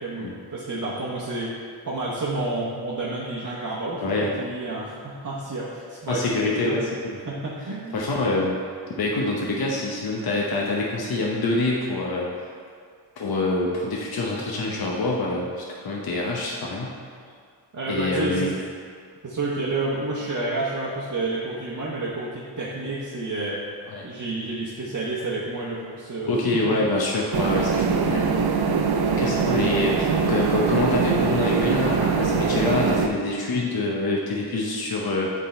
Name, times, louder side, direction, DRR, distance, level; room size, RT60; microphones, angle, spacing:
voice 1, 0.0-1.6 1.8-6.7 7.3-8.1 17.7-18.5 19.2-23.6 24.0-26.8 29.4-29.6, right 2 dB, 45° right, -7 dB, 0.9 m, -30 dB
voice 2, 4.0-4.4 6.1-7.2 7.9-8.6 8.9-12.5 13.2-17.0 17.9-18.5 23.9-24.1 26.3-28.3 29.1-35.3, left 2 dB, 60° left, -3 dB, 0.8 m, -26 dB
sound 1, 27.3-33.1, right 5 dB, 60° right, 0.6 m, -22 dB
7.9 x 3.7 x 4.3 m, 2.1 s
wide cardioid pair, 110°, 43 cm